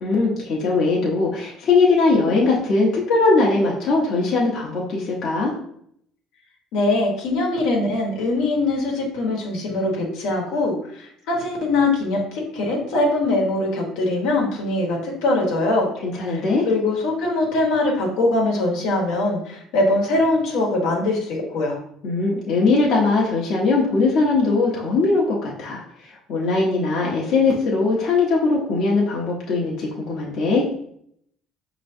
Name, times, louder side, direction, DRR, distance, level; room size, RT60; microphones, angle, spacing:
voice 1, 0.0-5.5 16.0-16.7 22.0-25.8 26.3-30.6, left 3 dB, 60° left, -4 dB, 1.0 m, -20 dB
voice 2, 6.7-15.9 16.2-16.4 16.7-21.8, left 2 dB, 85° left, -1 dB, 1.2 m, -22 dB
5.5 x 3.0 x 2.6 m, 0.68 s
cardioid pair, 115°, 0 cm